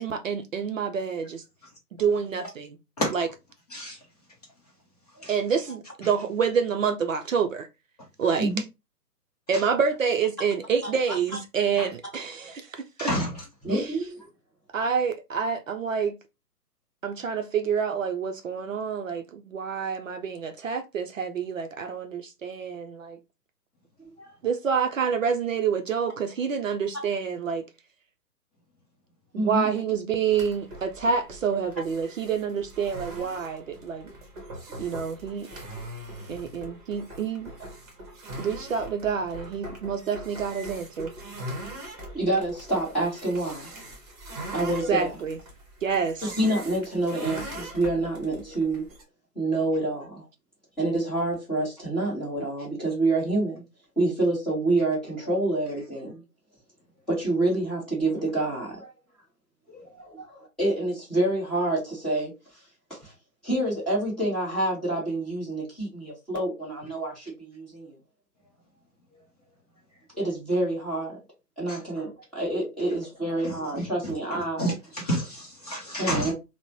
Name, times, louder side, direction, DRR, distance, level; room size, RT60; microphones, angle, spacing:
voice 1, 0.0-1.4 2.0-2.8 3.1-3.3 5.3-7.7 8.2-8.5 9.5-13.1 13.7-13.8 14.7-16.1 17.0-23.2 24.4-27.7 29.3-34.1 34.8-35.5 36.3-37.5 38.4-41.1 44.9-45.4 45.8-46.2, right 6 dB, 55° right, 0.5 m, -27 dB
voice 2, 13.0-13.3 71.7-71.8 74.6-76.3, equal, 25° left, 0.7 m, -29 dB
voice 3, 13.6-14.3 24.2-24.3 29.3-29.7 42.1-43.7 44.5-45.2 46.2-48.8 49.3-50.3 50.8-53.6 54.0-56.2 57.1-58.9 59.7-62.3 62.9-63.1 63.4-68.0 70.1-71.2 71.6-74.7 76.0-76.3, right 2 dB, ahead, 0.9 m, -27 dB
sound 1, 30.3-49.0, right 1 dB, 25° right, 0.9 m, -41 dB
3.5 x 2.1 x 2.8 m
figure-of-eight pair, 135°, 47 cm